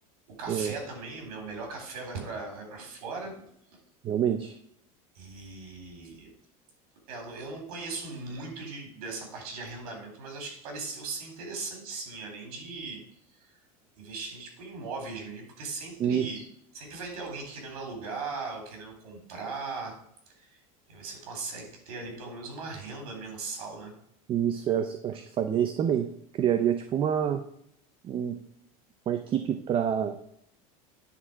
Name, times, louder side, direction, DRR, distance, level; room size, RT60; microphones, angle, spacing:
voice 1, 0.4-3.3 5.1-6.3 7.1-13.0 13.3-13.5 13.9-16.4 16.7-20.0 20.3-20.6 20.9-23.9, right 4 dB, 85° right, 2 dB, 3.8 m, -38 dB
voice 2, 4.0-4.6 16.0-16.3 24.3-26.1 26.3-27.4 28.0-28.4 29.1-30.2, right 9 dB, 30° right, 8 dB, 0.6 m, -27 dB
9.8 x 4.3 x 6.1 m, 0.71 s
supercardioid pair, 145°, 18 cm